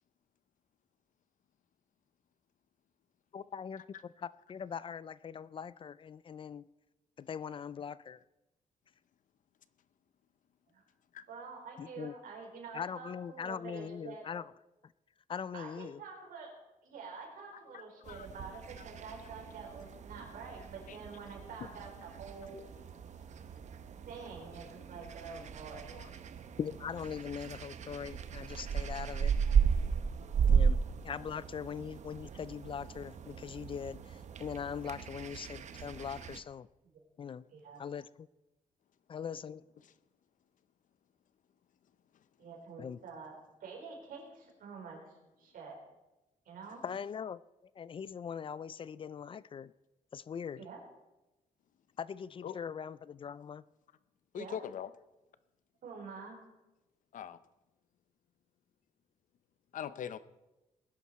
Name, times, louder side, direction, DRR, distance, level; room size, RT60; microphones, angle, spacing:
voice 1, 3.3-3.8 4.2-6.7 7.2-8.2 11.8-12.1 12.7-14.5 15.3-16.0 26.6-29.3 30.4-30.8 31.0-36.7 37.2-37.4 37.8-38.3 39.1-39.6 42.8-43.0 46.8-47.4 47.8-49.7 50.1-50.6 52.0-53.6, left 7 dB, 40° left, 19 dB, 0.4 m, -41 dB
voice 2, 11.3-14.3 15.5-16.5 16.8-22.6 24.1-26.1 36.9-37.0 37.5-37.8 42.4-45.1 45.4-45.8 46.5-46.8 50.6-50.8 54.3-54.6 55.8-56.5, right 4 dB, 85° right, 0 dB, 4.5 m, -47 dB
sound 1, 18.0-36.4, right 7 dB, 60° right, 0.9 m, -35 dB
voice 3, 54.3-54.9 57.1-57.4 59.7-60.2, left 9 dB, 70° left, 14 dB, 0.7 m, -41 dB
19.5 x 10.5 x 4.2 m, 1.0 s
cardioid pair, 135°, 14 cm